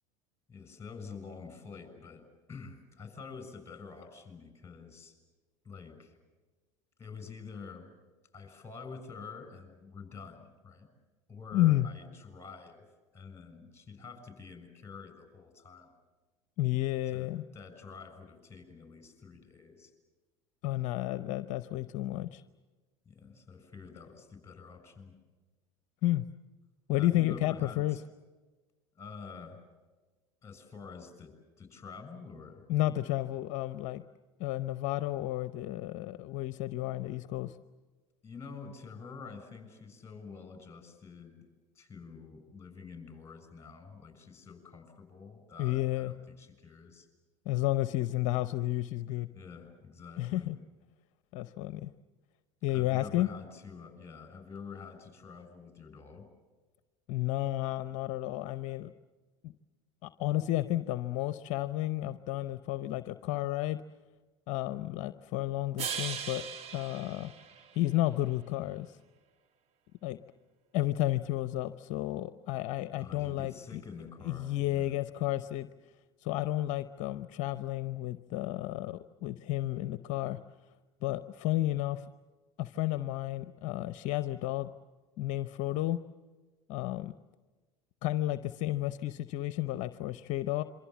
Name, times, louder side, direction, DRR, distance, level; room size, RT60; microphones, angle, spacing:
voice 1, 0.5-5.2 5.6-6.2 7.0-7.9 8.3-10.9 11.3-12.8 13.1-15.9 17.1-19.9 23.0-25.2 26.9-28.0 28.9-29.6 30.4-32.6 38.2-41.5 41.7-47.1 49.3-50.5 52.7-56.3 73.0-74.9, left 5 dB, 20° left, 8 dB, 6.7 m, -48 dB
voice 2, 11.5-11.9 16.6-17.4 20.6-22.4 26.0-26.3 26.9-28.0 32.7-34.0 34.4-37.6 45.6-46.1 47.5-49.3 50.2-50.5 51.3-51.9 52.6-53.3 57.1-58.9 59.4-59.5 60.0-63.8 64.5-66.4 66.7-67.3 67.7-69.0 70.0-70.2 70.7-73.8 74.2-75.7 76.2-80.4 81.0-82.0 82.6-84.7 85.2-86.0 86.7-87.1 88.0-90.6, left 15 dB, 55° left, 13 dB, 0.7 m, -32 dB
sound 1, 65.8-68.1, right 7 dB, 40° right, 1.7 m, -39 dB
27.0 x 24.5 x 7.2 m, 1.3 s
hypercardioid pair, 80°, 15 cm